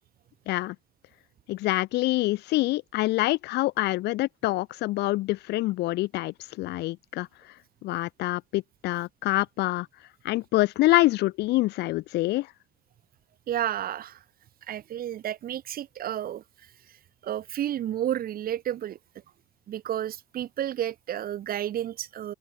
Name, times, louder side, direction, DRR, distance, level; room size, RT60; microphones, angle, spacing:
voice 1, 1.5-7.5 7.8-9.9 10.2-12.5, left 18 dB, 85° left, 3.0 m, -26 dB
voice 2, 13.5-14.2 14.7-16.4 17.2-19.0 19.7-22.3, right 11 dB, 60° right, 7.0 m, -31 dB
cardioid pair, 110°, 17 cm